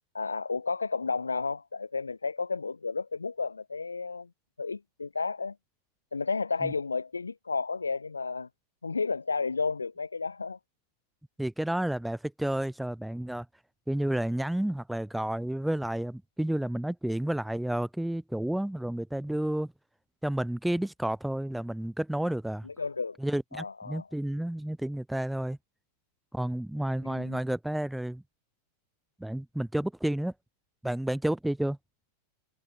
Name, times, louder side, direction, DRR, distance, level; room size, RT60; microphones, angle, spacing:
voice 1, 0.1-4.3 4.6-5.5 6.1-8.5 8.8-10.6 22.6-23.2 23.5-24.1 27.0-27.4, left 4 dB, 75° left, 3.3 m, -32 dB
voice 2, 11.4-13.5 13.9-19.7 20.2-22.7 23.2-25.6 26.3-28.2 29.2-30.3 30.8-31.8, right 1 dB, 5° right, 0.7 m, -31 dB
figure-of-eight pair, 90°, 0 cm